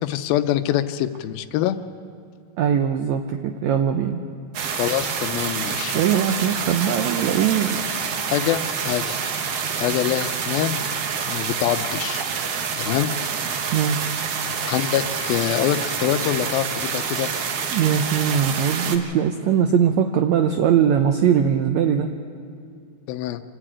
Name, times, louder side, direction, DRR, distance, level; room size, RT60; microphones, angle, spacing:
voice 1, 0.0-1.8 4.7-5.9 8.3-9.2 9.8-10.8 11.3-12.2 12.8-13.1 14.7-17.3 23.1-23.4, left 12 dB, 85° left, 11 dB, 2.5 m, -24 dB
voice 2, 2.6-4.2 5.9-7.8 13.7-14.1 17.7-22.1, right 8 dB, 85° right, 6 dB, 1.6 m, -21 dB
sound 1, 4.5-19.0, right 6 dB, 60° right, 1.6 m, -27 dB
26.5 x 11.0 x 8.9 m, 2.3 s
omnidirectional pair, 4.2 m